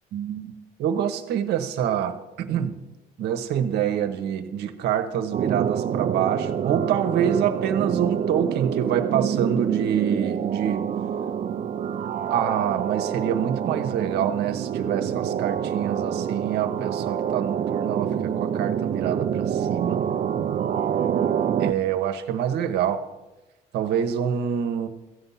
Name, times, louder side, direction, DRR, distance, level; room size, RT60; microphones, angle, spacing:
voice 1, 0.1-0.5 0.8-2.7 3.2-10.9 12.3-20.0 21.6-23.0 23.7-24.9, right 9 dB, 80° right, 8 dB, 1.1 m, -26 dB
sound 1, 5.3-21.7, right 8 dB, 45° right, 0.6 m, -26 dB
14.5 x 8.2 x 5.7 m, 1.0 s
cardioid pair, 110°, 17 cm